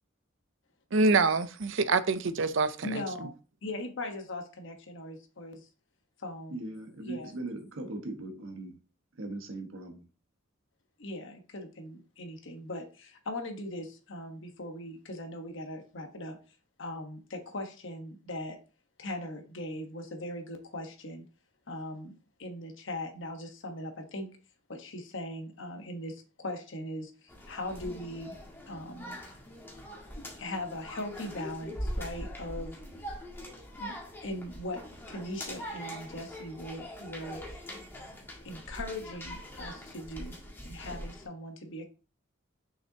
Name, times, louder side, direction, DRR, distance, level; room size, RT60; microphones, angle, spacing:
voice 1, 0.9-3.3, right 3 dB, 65° right, 0.6 m, -26 dB
voice 2, 2.8-3.3 3.6-5.7 6.2-6.6 7.0-7.3 11.0-16.4 16.8-18.6 19.0-21.2 21.7-22.1 22.4-24.3 24.7-28.3 28.7-29.2 30.2-32.8 33.8-34.8 35.1-37.6 38.4-40.4 40.6-41.9, left 1 dB, 65° left, 1.2 m, -40 dB
voice 3, 6.5-8.8 9.2-10.1, right 2 dB, 80° right, 1.4 m, -39 dB
sound 1, 27.3-41.3, equal, 10° left, 1.8 m, -42 dB
6.6 x 5.6 x 2.8 m
head